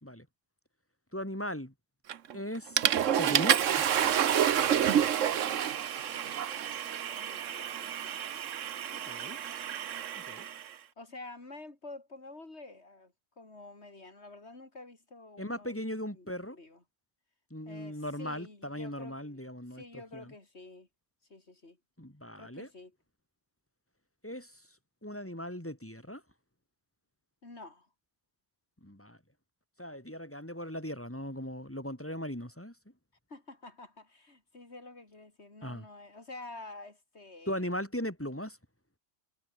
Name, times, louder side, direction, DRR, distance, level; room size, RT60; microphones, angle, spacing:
voice 1, 1.1-1.7 2.3-2.8 3.2-3.9 8.9-9.4 10.2-10.5 15.4-16.6 17.5-19.8 20.1-20.3 22.0-22.7 24.2-24.6 25.0-26.2 28.8-29.2 29.8-32.7 35.6-35.9 37.5-38.6, equal, 10° left, 3.0 m, -38 dB
Water / Toilet flush, 2.1-2.4 2.8-10.6, right 9 dB, 90° right, 1.3 m, -29 dB
voice 2, 4.8-5.7 6.1-8.2 11.0-15.8 16.1-16.8 17.7-19.4 19.7-20.9 21.3-21.8 22.4-23.0 27.4-27.9 33.3-37.7, left 2 dB, 60° left, 4.3 m, -49 dB
omnidirectional pair, 1.3 m